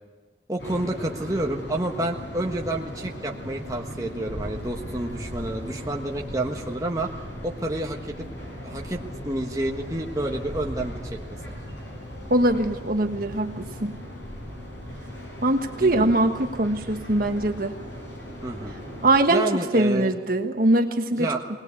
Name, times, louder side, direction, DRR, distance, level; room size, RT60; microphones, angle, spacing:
voice 1, 0.5-7.1 7.4-8.3 8.6-11.2 15.8-16.1 18.4-18.7 19.3-20.1 21.1-21.4, right 1 dB, 20° right, 0 dB, 1.4 m, -29 dB
sound 1, 0.6-19.2, equal, 85° left, 7.7 m, -38 dB
voice 2, 12.3-13.9 15.4-17.7 19.0-19.4 19.7-21.3, right 1 dB, 55° right, 5 dB, 1.4 m, -22 dB
20.5 x 19.5 x 8.4 m, 1.3 s
head